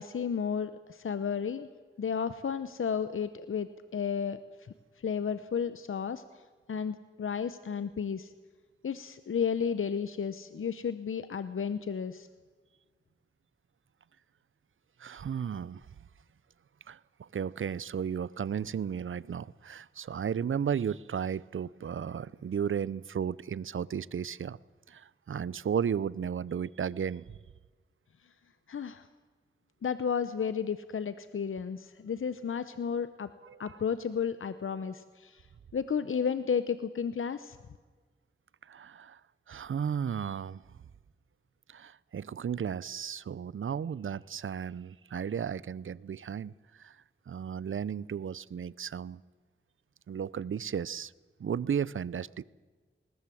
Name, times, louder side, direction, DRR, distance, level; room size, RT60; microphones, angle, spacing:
voice 1, 0.0-1.7 2.0-6.2 6.7-8.3 8.8-12.3 28.7-29.1 29.8-33.3 33.6-35.4 35.7-37.6, left 7 dB, 85° left, 0.8 m, -33 dB
voice 2, 15.0-15.8 16.9-24.6 24.9-27.3 33.4-33.8 38.7-39.2 39.5-40.6 41.7-47.0 47.3-49.2 50.1-51.1 51.4-52.4, right 7 dB, 75° right, 0.6 m, -34 dB
20.5 x 18.5 x 7.6 m
cardioid pair, 40°, 21 cm